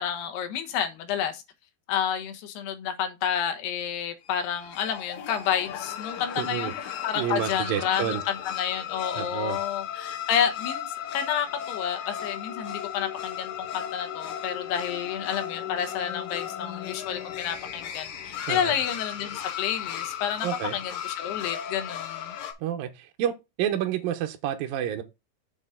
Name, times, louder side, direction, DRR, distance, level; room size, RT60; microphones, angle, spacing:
voice 1, 0.0-1.4 1.9-10.9 11.1-22.4, left 9 dB, 85° left, 3.2 m, -30 dB
sound 1, 4.3-22.5, left 10 dB, 65° left, 2.8 m, -36 dB
voice 2, 6.4-6.7 7.1-8.2 9.2-9.6 18.5-18.8 20.4-20.8 22.6-23.3 23.6-25.0, right 10 dB, 75° right, 2.5 m, -29 dB
7.1 x 6.4 x 3.8 m
omnidirectional pair, 4.6 m